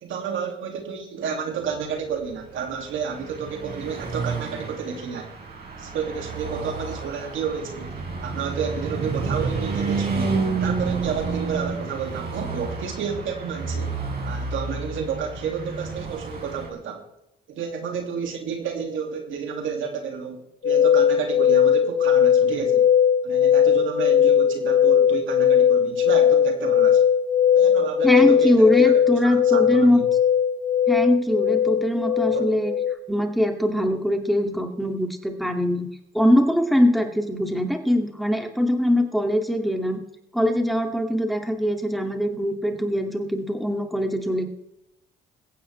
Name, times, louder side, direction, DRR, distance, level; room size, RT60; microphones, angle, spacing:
voice 1, 0.0-5.3 5.8-7.9 8.2-14.0 14.2-17.0 17.5-22.9 23.2-27.0 27.5-30.0 32.3-32.5, right 6 dB, 75° right, 3 dB, 2.5 m, -31 dB
Car passing by / Truck, 2.3-16.7, right 4 dB, 50° right, 4.4 m, -30 dB
sound 1, 20.6-32.9, left 9 dB, 65° left, 1.6 m, -19 dB
voice 2, 28.0-30.0 30.9-32.7 33.1-35.9 36.1-40.0 40.3-44.5, left 1 dB, ahead, 3 dB, 2.3 m, -22 dB
22.5 x 8.8 x 3.3 m, 0.84 s
supercardioid pair, 70°, 20 cm